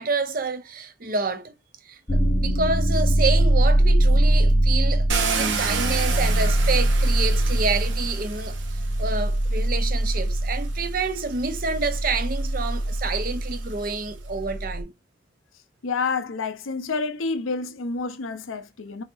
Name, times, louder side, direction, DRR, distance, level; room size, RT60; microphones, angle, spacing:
voice 1, 0.0-1.5 1.8-5.1 5.3-8.6 9.0-14.9, right 4 dB, 45° right, 0.7 m, -28 dB
sound 1, 2.1-14.8, right 1 dB, 20° left, 0.5 m, -22 dB
Car, 5.1-9.2 10.2-10.3 10.8-14.1, right 5 dB, 70° right, 1.1 m, -31 dB
voice 2, 15.8-19.0, left 4 dB, 90° left, 0.7 m, -28 dB
5.7 x 2.8 x 2.5 m
head